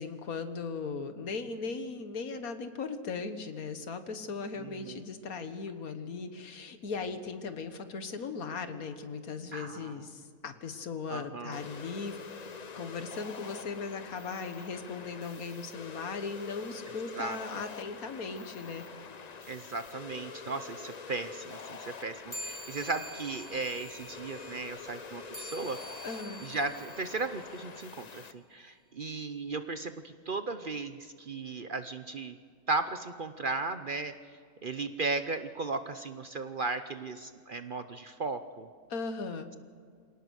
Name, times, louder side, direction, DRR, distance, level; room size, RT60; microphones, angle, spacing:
voice 1, 0.0-12.2 12.7-18.8 26.0-26.4 38.9-39.5, left 4 dB, 75° left, 9 dB, 1.8 m, -38 dB
voice 2, 4.6-5.0 9.5-10.0 11.1-11.6 17.2-17.4 19.5-25.8 26.4-32.4 32.7-34.1 34.6-38.7, right 3 dB, 45° right, 10 dB, 0.8 m, -36 dB
sound 1, 11.5-28.3, left 5 dB, 40° left, 0.7 m, -46 dB
sound 2, 22.3-28.1, equal, 20° left, 2.4 m, -47 dB
26.0 x 18.0 x 6.4 m, 2.1 s
omnidirectional pair, 1.5 m